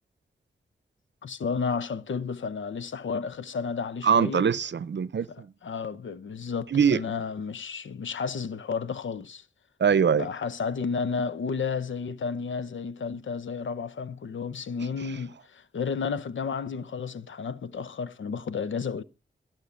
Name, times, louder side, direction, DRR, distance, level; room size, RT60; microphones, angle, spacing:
voice 1, 1.2-4.5 5.3-9.4 10.2-19.0, left 5 dB, 85° left, 0.8 m, -32 dB
voice 2, 4.0-5.5 6.7-7.0 9.8-10.3, right 7 dB, 70° right, 0.7 m, -22 dB
17.0 x 5.7 x 6.9 m
wide cardioid pair, 70°, 19 cm